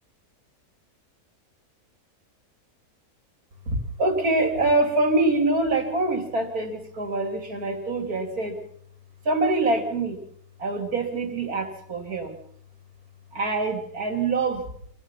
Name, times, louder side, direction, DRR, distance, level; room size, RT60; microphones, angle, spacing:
voice 1, 3.7-8.6 9.3-10.2 10.6-12.3 13.3-14.6, right 2 dB, 70° right, 5 dB, 3.6 m, -25 dB
25.5 x 18.0 x 5.8 m, 0.64 s
omnidirectional pair, 1.6 m